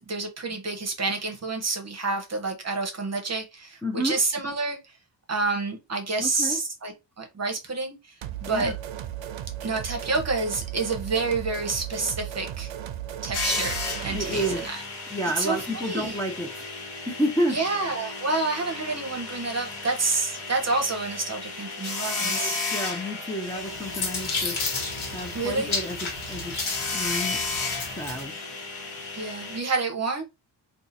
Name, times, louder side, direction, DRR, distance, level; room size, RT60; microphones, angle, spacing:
voice 1, 0.0-4.8 5.3-8.0 8.4-8.7 9.6-12.7 13.2-13.8 14.0-14.8 15.4-16.2 17.5-22.6 23.5-23.6 25.3-25.7 27.1-27.3 29.1-30.2, right 3 dB, 35° right, 0.8 m, -28 dB
voice 2, 3.8-4.2 6.2-6.6 8.5-8.7 14.1-14.6 15.1-16.7 17.1-17.6 22.2-24.6 25.1-26.5 26.9-27.4 27.9-28.4, equal, 10° left, 0.5 m, -30 dB
sound 1, 8.2-14.7, right 11 dB, 75° right, 0.6 m, -35 dB
sound 2, 13.3-29.6, left 3 dB, 60° left, 1.3 m, -34 dB
sound 3, 23.5-28.3, left 3 dB, 75° left, 1.2 m, -32 dB
2.7 x 2.4 x 3.9 m
wide cardioid pair, 150°, 47 cm